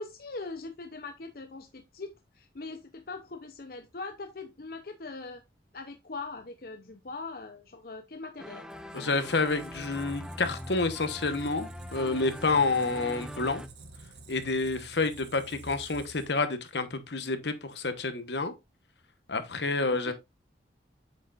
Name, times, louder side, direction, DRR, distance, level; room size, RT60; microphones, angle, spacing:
voice 1, 0.0-5.4 5.7-8.7 19.9-20.1, left 3 dB, 55° left, 0.7 m, -41 dB
sound 1, 8.4-13.7, equal, 5° right, 0.5 m, -42 dB
Squeak, 8.7-16.6, right 2 dB, 80° right, 1.4 m, -50 dB
voice 2, 8.9-13.6 14.3-18.5 19.3-20.1, left 3 dB, 75° left, 1.1 m, -29 dB
8.4 x 6.4 x 2.5 m
head